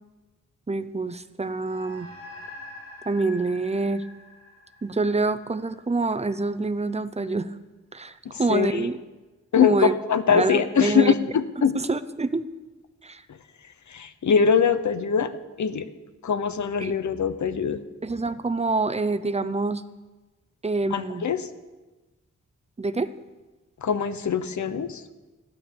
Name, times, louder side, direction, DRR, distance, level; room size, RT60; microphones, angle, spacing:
voice 1, 0.7-2.1 3.1-4.0 4.8-7.5 7.9-9.0 9.6-9.9 10.3-11.1 11.7-12.4 13.0-13.2 16.8-16.9 18.0-19.8 20.6-21.3 22.8-23.1, right 3 dB, 20° right, 12 dB, 0.7 m, -26 dB
sound 1, 1.5-6.2, left 2 dB, 55° left, 7.1 m, -45 dB
voice 2, 8.5-8.9 9.5-11.7 13.9-15.3 15.6-15.9 16.2-17.8 20.9-21.4 23.8-25.0, left 6 dB, 75° left, 12 dB, 1.0 m, -22 dB
15.0 x 11.5 x 7.0 m, 1.2 s
wide cardioid pair, 130°, 29 cm